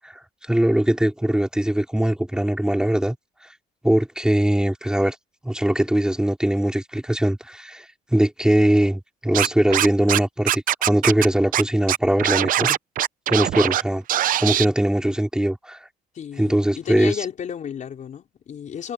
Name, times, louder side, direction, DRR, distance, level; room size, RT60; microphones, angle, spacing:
voice 1, 0.0-3.2 3.8-5.2 5.4-12.8 13.3-14.0 14.4-15.9 16.4-17.2, right 1 dB, 5° right, 4.0 m, -21 dB
Scratching (performance technique), 9.3-10.2 10.5-11.3 11.5-11.6 11.9-13.8 14.1-14.7, right 12 dB, 55° right, 0.6 m, -21 dB
voice 2, 16.1-18.9, left 8 dB, 45° left, 4.6 m, -33 dB
cardioid pair, 110°, 17 cm